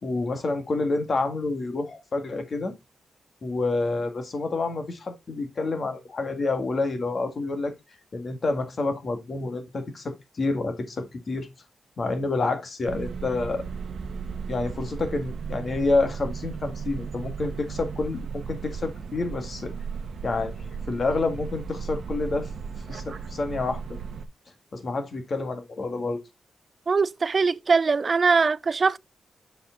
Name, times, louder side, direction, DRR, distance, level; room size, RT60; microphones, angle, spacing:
voice 1, 0.0-2.7 3.4-7.7 8.1-11.5 12.0-13.6 14.5-19.7 20.2-22.5 22.9-23.8 24.7-26.2, left 3 dB, 45° left, 1.9 m, -28 dB
sound 1, 12.8-24.3, right 6 dB, 70° right, 1.0 m, -35 dB
voice 2, 26.9-29.0, right 4 dB, 40° right, 0.4 m, -22 dB
6.8 x 4.9 x 3.9 m
wide cardioid pair, 105°, 0 cm